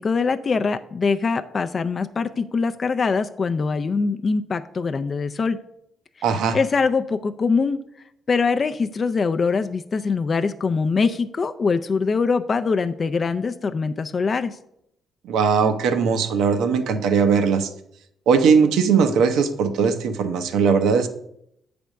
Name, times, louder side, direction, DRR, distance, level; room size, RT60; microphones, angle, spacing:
voice 1, 0.0-5.6 6.5-7.8 8.3-14.6, left 4 dB, 40° left, 9 dB, 0.3 m, -23 dB
voice 2, 6.2-6.6 15.2-17.7 18.3-21.1, right 6 dB, 85° right, 8 dB, 0.7 m, -19 dB
8.1 x 3.4 x 6.3 m, 0.77 s
cardioid pair, 90°, 0 cm